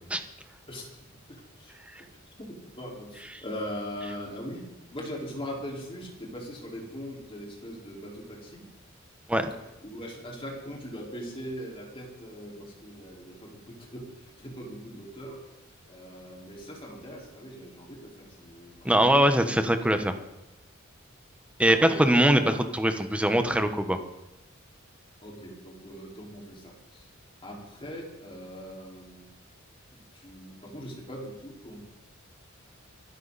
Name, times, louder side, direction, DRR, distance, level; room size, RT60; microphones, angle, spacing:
voice 1, 2.8-8.7 9.5-15.4 15.9-18.9 21.6-22.4 25.2-27.1 27.4-29.3 29.9-31.8, equal, 25° left, -2 dB, 4.7 m, -41 dB
voice 2, 18.8-20.1 21.6-24.0, right 1 dB, 5° right, 8 dB, 1.2 m, -22 dB
24.5 x 13.0 x 4.2 m, 0.94 s
head